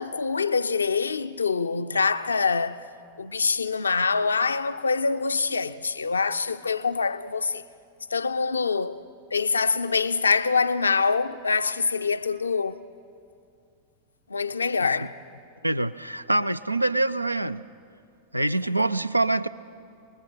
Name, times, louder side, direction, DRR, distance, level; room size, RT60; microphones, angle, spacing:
voice 1, 0.0-2.8 3.2-7.6 8.1-9.0 9.3-12.8 14.3-15.2, left 5 dB, 75° left, 0.6 m, -25 dB
voice 2, 15.6-17.6 18.3-19.5, right 2 dB, 85° right, 0.5 m, -25 dB
28.5 x 20.5 x 5.8 m
figure-of-eight pair, 90°, 0 cm